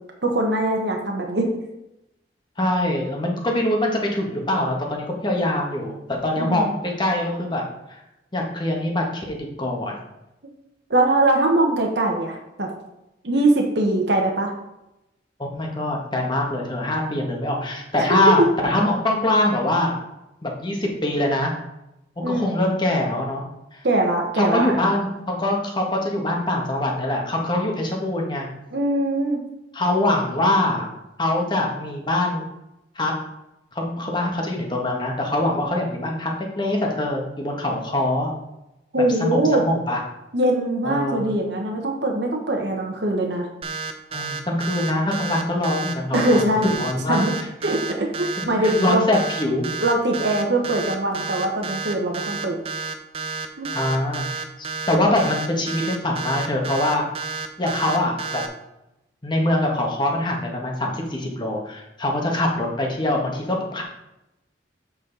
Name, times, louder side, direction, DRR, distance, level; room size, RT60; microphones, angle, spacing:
voice 1, 0.2-1.5 6.3-6.8 10.9-12.7 13.2-14.5 22.2-22.6 23.8-24.7 28.7-29.4 38.9-39.6 40.3-43.5 46.1-46.7 47.1-47.3 47.6-49.0 49.8-52.6 53.6-53.7, right 1 dB, 65° right, 1 dB, 1.2 m, -22 dB
voice 2, 2.6-5.9 6.2-7.6 7.9-8.0 8.3-10.0 15.4-20.0 20.4-21.5 22.3-23.4 23.7-23.8 24.4-28.5 29.7-30.9 31.2-32.4 32.9-33.1 33.7-38.3 39.2-40.0 40.8-41.3 44.1-47.3 48.6-49.7 53.7-57.0 57.6-58.4 59.2-63.8, left 1 dB, 25° left, 0 dB, 1.4 m, -23 dB
sound 1, 43.6-58.5, right 4 dB, 30° right, 0.6 m, -30 dB
7.9 x 5.7 x 4.0 m, 0.89 s
head